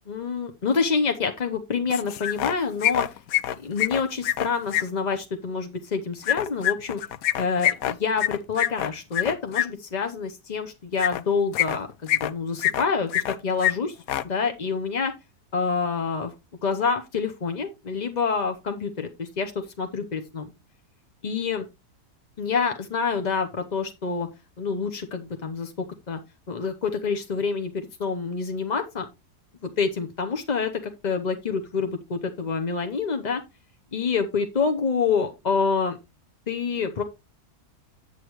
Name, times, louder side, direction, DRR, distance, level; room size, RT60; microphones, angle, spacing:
voice 1, 0.1-3.1 3.6-7.0 7.4-14.0 14.2-15.1 15.5-16.3 16.6-20.5 21.2-21.7 22.4-24.3 24.6-25.7 26.1-26.2 26.5-29.0 29.6-33.4 33.9-36.0 36.5-37.0, left 5 dB, 35° left, 6 dB, 0.7 m, -27 dB
sound 1, 1.9-2.5 2.8-4.8 6.2-9.7 11.0-11.2 11.5-12.3 12.6-13.4 13.6-13.7 14.0-14.2, left 12 dB, 70° left, 1.0 m, -25 dB
8.6 x 8.4 x 3.0 m, 0.25 s
omnidirectional pair, 1.7 m